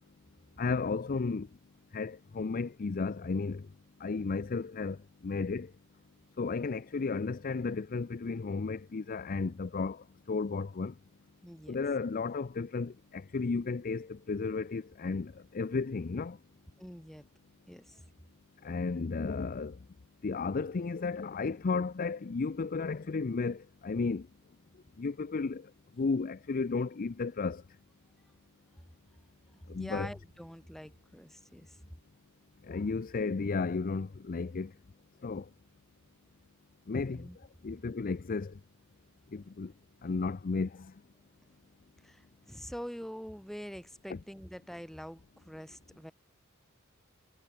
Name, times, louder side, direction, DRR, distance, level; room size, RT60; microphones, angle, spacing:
voice 1, 0.6-1.5 1.9-3.6 4.0-5.0 5.2-5.7 6.4-10.9 11.7-16.4 18.6-19.8 20.2-24.3 25.0-25.6 26.0-27.6 29.7-30.1 32.7-34.7 35.2-35.4 36.9-37.3 37.6-38.5 39.3-39.7 40.0-40.9 44.1-44.2, left 4 dB, 40° left, 0.5 m, -33 dB
voice 2, 11.4-11.8 16.8-17.3 17.7-18.1 29.5-31.8 37.0-37.4 42.0-46.1, equal, ahead, 6.9 m, -45 dB
head